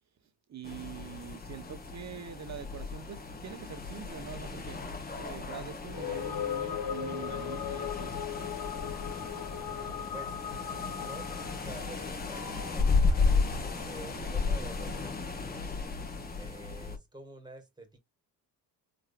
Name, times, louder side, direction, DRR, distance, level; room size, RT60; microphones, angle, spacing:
voice 1, 0.5-4.8 5.2-8.2, right 8 dB, 40° right, 1.0 m, -44 dB
sound 1, 0.6-17.0, left 4 dB, 25° left, 1.3 m, -34 dB
sound 2, 5.9-15.2, left 7 dB, 75° left, 1.8 m, -42 dB
sound 3, 5.9-11.7, left 9 dB, 55° left, 0.7 m, -39 dB
voice 2, 10.8-13.3 13.9-15.6 16.4-18.0, right 2 dB, 10° right, 1.7 m, -49 dB
3.8 x 3.1 x 2.4 m
cardioid pair, 95°, 40 cm